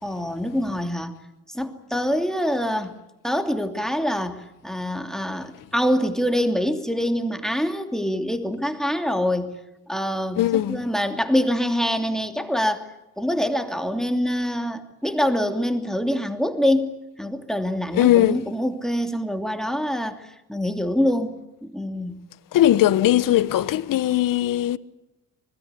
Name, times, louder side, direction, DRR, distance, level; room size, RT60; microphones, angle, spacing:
voice 1, 0.0-1.1 1.5-3.0 3.2-9.5 9.9-12.9 13.2-16.9 17.2-21.3 21.6-22.2, equal, ahead, 2.9 m, -25 dB
voice 2, 10.4-10.8 17.9-18.5 22.5-24.8, left 13 dB, 60° left, 1.3 m, -19 dB
25.5 x 21.0 x 8.3 m
supercardioid pair, 65°, 37 cm